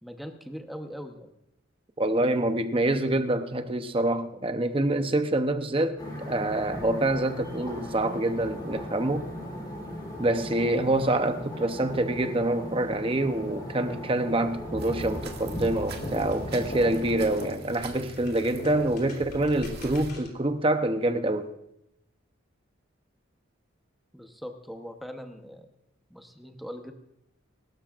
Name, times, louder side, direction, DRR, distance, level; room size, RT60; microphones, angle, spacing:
voice 1, 0.0-1.3 24.1-25.7 26.1-26.9, equal, ahead, 1.0 m, -41 dB
voice 2, 2.0-6.0 6.3-9.3 10.2-21.5, right 1 dB, 25° right, 0.8 m, -26 dB
sound 1, 6.0-17.3, equal, 20° left, 3.2 m, -38 dB
sound 2, 14.8-20.1, right 2 dB, 50° right, 2.0 m, -43 dB
sound 3, 15.9-20.5, left 1 dB, 50° left, 3.6 m, -41 dB
25.0 x 13.0 x 2.5 m
head